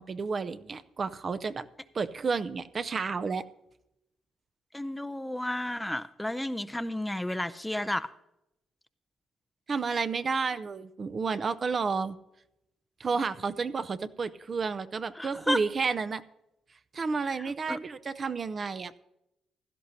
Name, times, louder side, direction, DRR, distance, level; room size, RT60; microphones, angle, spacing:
voice 1, 0.0-1.7 1.9-3.4 9.7-12.2 13.0-16.2 16.9-19.0, right 4 dB, 40° right, 12 dB, 0.6 m, -31 dB
voice 2, 4.7-8.1 15.2-15.6 17.4-17.8, left 1 dB, 5° left, 14 dB, 0.5 m, -32 dB
16.0 x 12.0 x 2.7 m, 0.84 s
cardioid pair, 90°, 0 cm